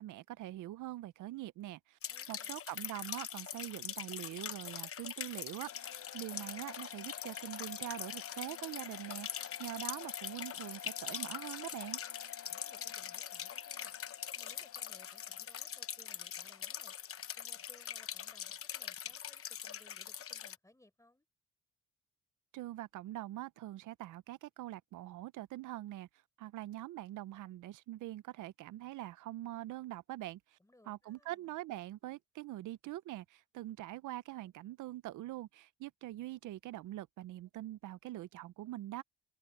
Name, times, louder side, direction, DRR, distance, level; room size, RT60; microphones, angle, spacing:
voice 1, 0.0-2.0 2.3-12.0 22.5-26.1 26.4-30.6 30.9-39.0, right 15 dB, 80° right, 0.7 m, -44 dB
sound 1, 2.0-20.5, left 9 dB, 50° left, 0.9 m, -43 dB
voice 2, 2.1-2.7 12.5-13.9 14.4-16.9 17.4-21.3 30.6-31.5, left 1 dB, 10° left, 4.3 m, -64 dB
sound 2, 5.7-18.6, left 10 dB, 65° left, 3.8 m, -52 dB
cardioid pair, 90°, 30 cm